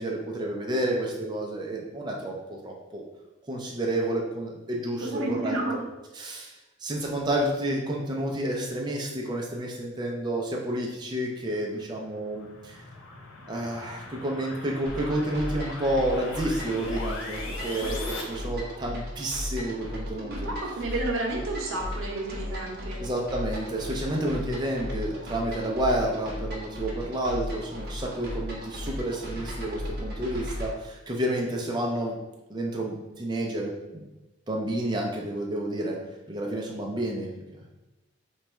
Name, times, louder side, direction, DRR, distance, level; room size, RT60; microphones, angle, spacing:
voice 1, 0.0-3.0 3.5-5.5 6.2-6.5 6.8-12.8 13.5-20.5 23.0-32.2 32.5-34.1 34.5-36.0 36.3-37.3, right 1 dB, 20° right, -1 dB, 0.5 m, -30 dB
voice 2, 5.0-5.8 17.6-17.9 20.1-23.0, right 2 dB, 85° right, 0 dB, 0.8 m, -31 dB
sound 1, 11.7-18.2, left 3 dB, 70° left, 0.6 m, -40 dB
sound 2, 14.9-30.7, left 1 dB, 50° right, 0.9 m, -36 dB
3.1 x 2.3 x 4.2 m, 1.0 s
head